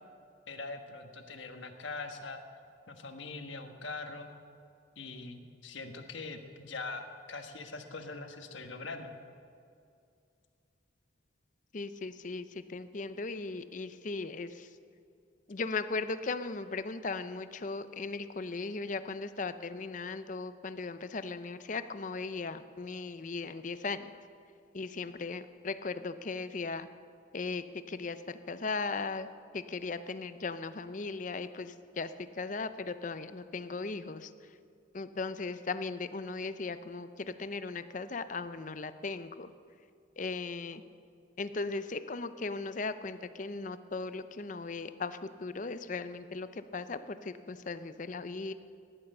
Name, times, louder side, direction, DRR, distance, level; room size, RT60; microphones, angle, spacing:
voice 1, 0.5-2.4 2.9-4.3 5.0-9.1, left 3 dB, 75° left, 6 dB, 1.3 m, -42 dB
voice 2, 11.7-14.8 15.5-24.1 24.7-26.9 27.3-29.3 29.5-34.5 34.9-39.5 40.2-40.8 41.4-48.5, left 3 dB, 40° left, 12 dB, 0.5 m, -37 dB
15.0 x 11.0 x 6.7 m, 2.4 s
head